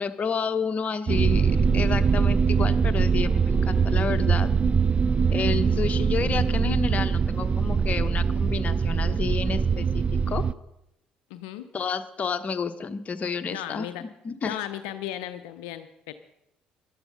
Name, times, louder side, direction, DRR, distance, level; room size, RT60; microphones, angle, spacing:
voice 1, 0.0-4.5 5.3-10.5 11.7-14.6, left 5 dB, 40° left, 9 dB, 1.0 m, -30 dB
sound 1, 1.1-10.5, right 6 dB, 30° right, 0.5 m, -23 dB
voice 2, 11.3-11.7 13.5-14.1 14.4-16.1, left 12 dB, 75° left, 10 dB, 0.6 m, -35 dB
13.5 x 11.5 x 5.4 m, 0.85 s
hypercardioid pair, 50°, 4 cm